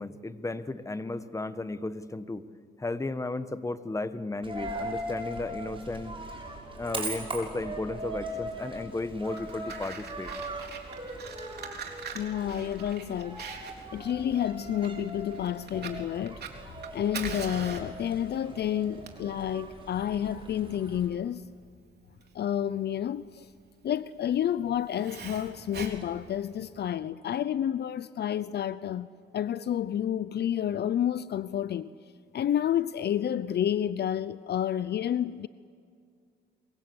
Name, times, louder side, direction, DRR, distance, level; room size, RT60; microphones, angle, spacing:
voice 1, 0.0-2.5 2.8-6.1 6.8-10.3, left 2 dB, 15° left, 1.3 m, -34 dB
Coin (dropping), 4.4-21.1, right 1 dB, 25° right, 7.0 m, -40 dB
Fire, 9.2-26.9, right 6 dB, 55° right, 3.7 m, -43 dB
voice 2, 12.1-13.4 13.9-16.4 16.7-21.4 22.3-23.5 23.8-29.1 29.3-31.9 32.3-35.5, left 10 dB, 55° left, 0.7 m, -30 dB
27.5 x 23.5 x 8.0 m
cardioid pair, 90°, 20 cm